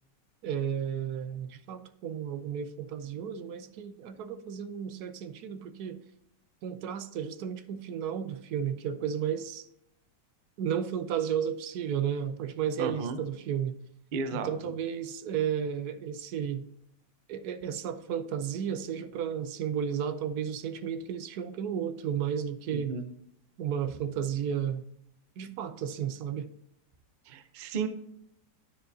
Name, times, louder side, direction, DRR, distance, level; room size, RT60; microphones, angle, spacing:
voice 1, 0.4-6.0 6.6-9.6 10.6-13.8 14.3-16.6 17.3-22.9 23.6-24.8 25.4-26.5, right 8 dB, 70° right, 10 dB, 1.1 m, -33 dB
voice 2, 12.8-13.2 14.1-14.7 22.7-23.1 27.3-27.9, right 5 dB, 85° right, 9 dB, 0.4 m, -34 dB
10.5 x 6.8 x 2.7 m, 0.76 s
omnidirectional pair, 1.9 m